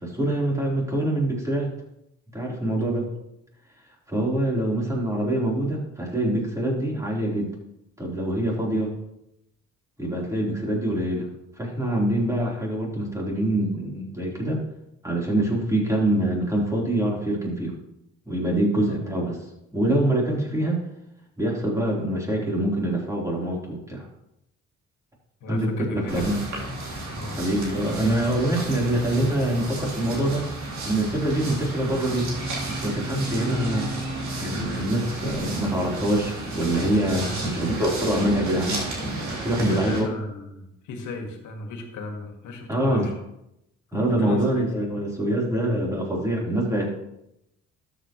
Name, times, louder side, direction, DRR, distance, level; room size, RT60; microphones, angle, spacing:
voice 1, 0.0-1.7 2.3-3.1 4.1-7.5 8.0-8.9 10.0-11.3 11.6-14.6 15.0-17.8 18.3-19.4 19.7-20.8 21.4-24.1 25.5-26.4 27.4-30.4 30.8-32.3 32.7-33.9 34.4-40.1 42.7-43.1 43.9-47.0, right 1 dB, 10° right, -3 dB, 3.9 m, -25 dB
voice 2, 25.4-26.3 27.1-27.4 37.2-37.9 39.6-43.1 43.9-44.7, left 2 dB, 80° left, 4 dB, 2.0 m, -36 dB
sound 1, 26.1-40.0, right 2 dB, 70° right, 3.5 m, -32 dB
12.5 x 8.1 x 3.2 m, 0.83 s
cardioid pair, 90°, 30 cm